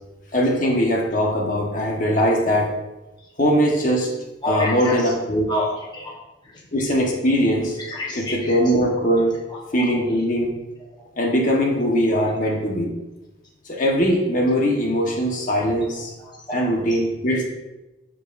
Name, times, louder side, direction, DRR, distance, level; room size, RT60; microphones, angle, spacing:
voice 1, 0.3-2.7 3.4-4.1 4.5-5.5 6.7-7.8 8.1-9.4 9.7-10.5 11.2-12.9 13.7-16.1 16.5-17.5, equal, 45° left, -1 dB, 1.2 m, -21 dB
voice 2, 4.4-5.1 5.5-6.2 6.4-6.6 7.8-8.6 9.7-9.9 16.2-16.6, left 1 dB, 25° left, -4 dB, 1.0 m, -29 dB
12.0 x 4.8 x 2.5 m, 1.0 s
head